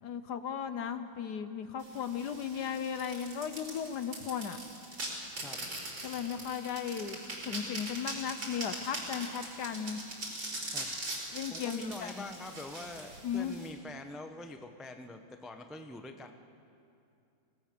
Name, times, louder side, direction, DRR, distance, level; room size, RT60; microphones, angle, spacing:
voice 1, 0.0-4.6 6.0-7.2 7.4-10.0 11.3-12.3 13.2-13.5, left 7 dB, 65° left, 10 dB, 1.3 m, -36 dB
sound 1, 1.8-13.7, right 2 dB, 75° right, 5.4 m, -41 dB
voice 2, 11.5-16.3, left 2 dB, ahead, 6 dB, 0.5 m, -45 dB
25.5 x 18.0 x 6.8 m, 2.6 s
omnidirectional pair, 2.1 m